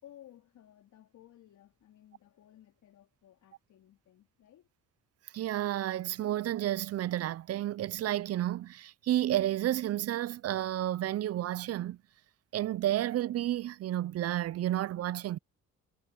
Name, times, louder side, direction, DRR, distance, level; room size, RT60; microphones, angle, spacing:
voice 1, 0.0-4.7, left 12 dB, 75° left, 3.9 m, -57 dB
voice 2, 5.3-12.0 12.5-15.4, right 13 dB, 55° right, 0.5 m, -31 dB
cardioid pair, 90°, 30 cm